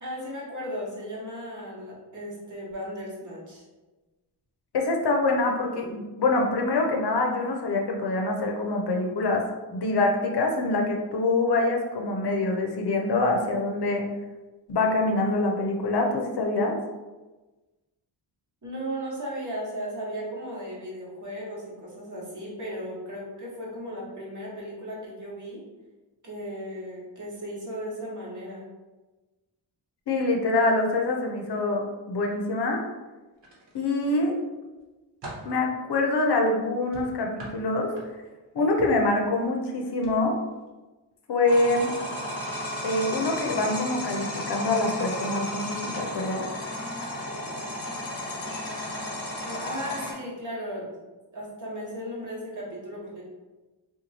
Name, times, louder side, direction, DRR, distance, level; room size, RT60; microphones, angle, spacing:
voice 1, 0.0-3.6 18.6-25.6 26.2-28.7 49.4-51.0 51.3-53.2, equal, 40° right, -5 dB, 1.2 m, -36 dB
voice 2, 4.7-9.4 9.7-14.0 14.7-16.8 30.1-32.8 33.7-34.3 35.4-37.9 38.5-40.3 41.3-41.9 42.8-46.4, left 2 dB, 60° left, 1 dB, 0.6 m, -25 dB
sound 1, 33.4-34.2 34.7-35.6 36.9-38.4 38.8-39.1 39.9-40.1 40.5-40.7, right 1 dB, 70° right, 1.0 m, -43 dB
sound 2, 41.5-50.1, left 1 dB, 30° left, 0.8 m, -33 dB
3.0 x 2.3 x 4.0 m, 1.2 s
wide cardioid pair, 125°, 45 cm